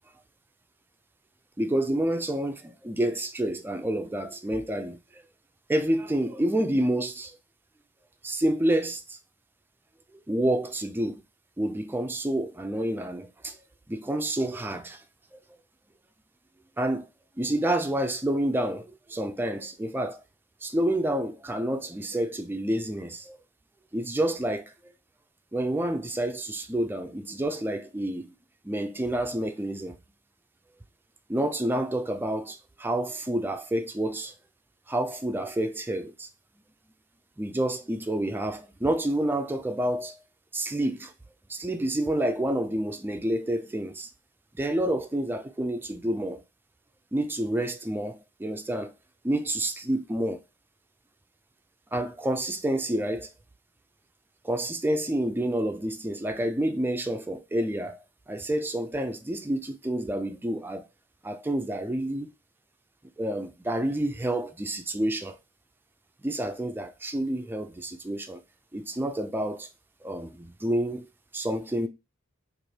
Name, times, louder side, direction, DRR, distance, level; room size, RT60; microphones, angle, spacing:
voice 1, 1.6-5.2 5.7-7.4 8.2-9.2 10.3-11.2 11.6-13.6 13.9-15.0 15.3-15.4 16.8-17.1 17.4-20.2 20.6-23.4 23.9-24.9 25.5-28.3 28.6-30.0 31.3-34.3 34.9-36.3 37.4-40.2 40.5-41.1 41.5-44.1 44.6-46.4 47.1-48.9 49.2-50.4 51.9-53.3 54.4-58.0 58.3-60.9 61.2-62.3 63.2-65.4 66.2-68.4 68.7-69.7 70.0-71.1 71.3-71.9, right 1 dB, 10° right, 0.3 m, -29 dB
3.2 x 2.5 x 4.0 m
head